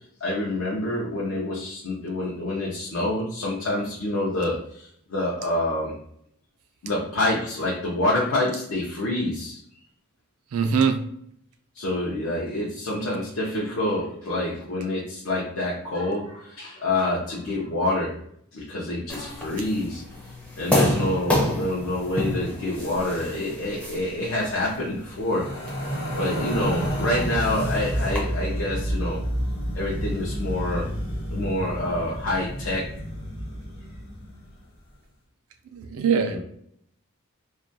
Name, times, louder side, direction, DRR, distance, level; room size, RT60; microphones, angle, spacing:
voice 1, 0.2-5.9 6.8-9.6 11.7-18.1 18.5-20.0 20.6-25.5 26.2-29.2 29.7-30.9 31.3-32.9 36.3-36.4, left 1 dB, 65° left, -5 dB, 0.5 m, -27 dB
voice 2, 10.5-11.0 35.7-36.4, right 6 dB, 75° right, 6 dB, 0.3 m, -22 dB
sound 1, 19.1-28.2, left 1 dB, 5° left, 0.5 m, -30 dB
sound 2, 25.2-34.5, equal, 45° left, 0.9 m, -30 dB
2.3 x 2.2 x 2.6 m, 0.69 s
head